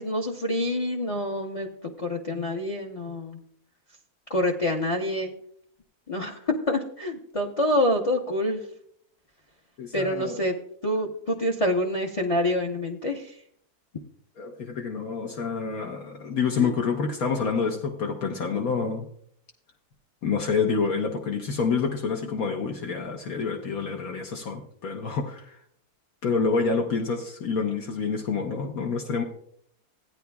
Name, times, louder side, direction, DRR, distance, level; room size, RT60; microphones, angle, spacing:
voice 1, 0.0-3.4 4.3-5.3 6.1-8.7 9.9-10.6 10.8-13.4 16.6-16.7, left 1 dB, 30° left, 1 dB, 0.6 m, -27 dB
voice 2, 9.8-10.4 14.4-19.1 20.2-25.6 26.2-29.2, left 5 dB, 70° left, 1 dB, 1.4 m, -28 dB
16.0 x 9.5 x 2.3 m, 0.65 s
omnidirectional pair, 1.6 m